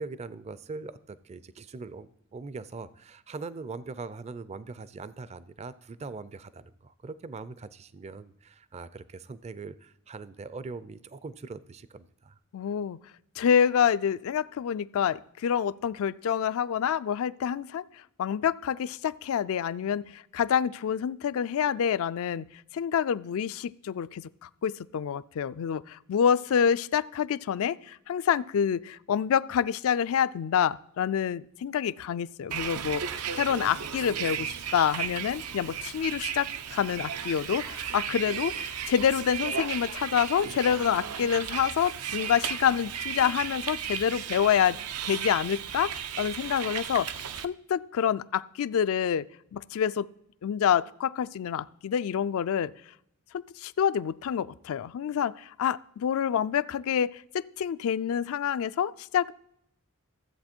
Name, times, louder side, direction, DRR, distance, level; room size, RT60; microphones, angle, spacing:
voice 1, 0.0-12.4, right 4 dB, 30° right, 16 dB, 0.4 m, -41 dB
voice 2, 12.5-13.0 13.4-17.8 18.2-22.5 22.7-44.8 45.0-47.1 47.4-50.1 50.4-52.7 53.3-59.3, left 8 dB, 70° left, 16 dB, 0.3 m, -27 dB
Bus, 32.5-47.5, right 8 dB, 90° right, 0.6 m, -35 dB
14.0 x 7.8 x 4.4 m, 0.75 s
head